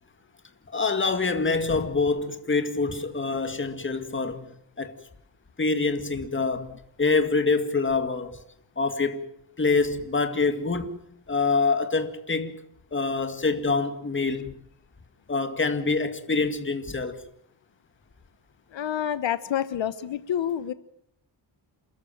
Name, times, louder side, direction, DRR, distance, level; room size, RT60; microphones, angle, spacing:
voice 1, 0.7-5.0 5.6-8.4 8.8-9.2 9.6-11.0 11.3-12.6 12.9-14.6 15.3-17.2, left 4 dB, 25° left, 2.2 m, -26 dB
voice 2, 18.7-20.7, left 10 dB, 90° left, 1.2 m, -28 dB
28.5 x 14.0 x 9.1 m
wide cardioid pair, 135°, 44 cm